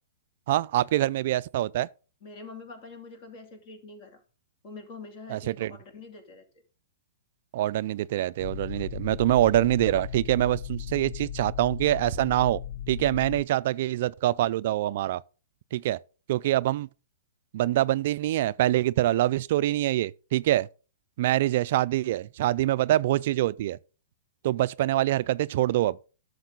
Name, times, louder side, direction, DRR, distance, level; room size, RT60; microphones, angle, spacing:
voice 1, 0.5-1.9 5.3-5.7 7.5-12.6 12.9-15.2 15.7-16.0 16.3-16.9 17.5-20.7 21.2-23.8 24.4-26.0, right 14 dB, 55° right, 0.3 m, -25 dB
voice 2, 2.2-4.2 4.6-6.5, left 3 dB, 40° left, 2.7 m, -45 dB
sound 1, 8.4-13.4, left 10 dB, 55° left, 0.4 m, -37 dB
11.5 x 6.7 x 3.8 m
hypercardioid pair, 145°, 0 cm